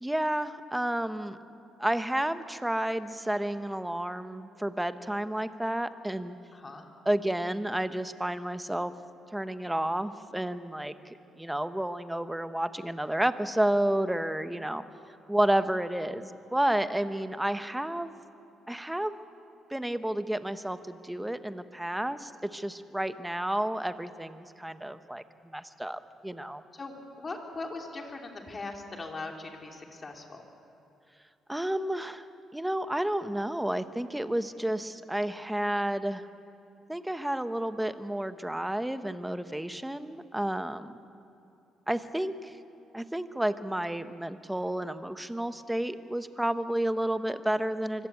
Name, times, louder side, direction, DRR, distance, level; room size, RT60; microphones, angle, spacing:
voice 1, 0.0-1.4 1.8-6.4 7.0-8.9 9.3-10.9 11.4-14.8 15.3-18.2 18.7-19.2 19.7-26.6 31.5-32.3 32.5-36.2 36.9-41.0 41.9-42.5 42.9-48.1, right 1 dB, 5° right, 11 dB, 1.0 m, -31 dB
voice 2, 6.5-6.8 26.7-30.4, left 3 dB, 35° left, 2 dB, 3.1 m, -40 dB
24.5 x 16.0 x 8.5 m, 2.8 s
cardioid pair, 90°, 0 cm